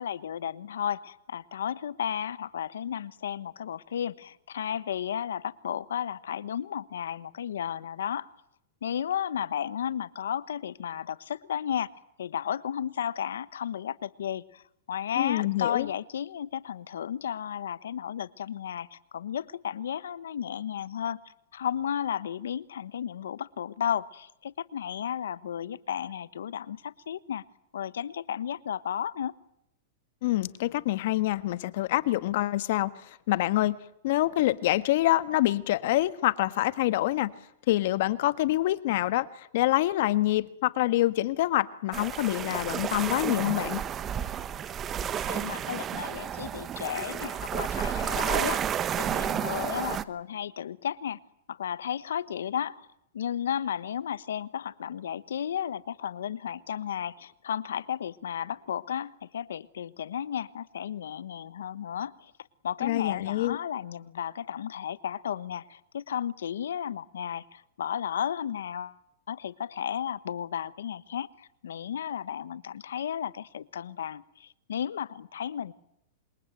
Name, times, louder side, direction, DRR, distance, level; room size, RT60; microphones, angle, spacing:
voice 1, 0.0-8.3 8.8-11.9 12.2-27.4 27.7-29.3 45.2-48.6 49.0-51.2 51.5-52.9 53.1-62.3 62.6-69.0 69.3-75.7, left 9 dB, 90° left, 1.2 m, -33 dB
voice 2, 15.2-15.9 30.2-32.9 33.3-33.7 34.0-37.3 37.7-43.8 62.8-63.6, left 16 dB, 65° left, 1.5 m, -26 dB
sound 1, 41.9-50.0, right 9 dB, 25° right, 1.2 m, -31 dB
27.0 x 22.5 x 9.1 m
hypercardioid pair, 130°, 0 cm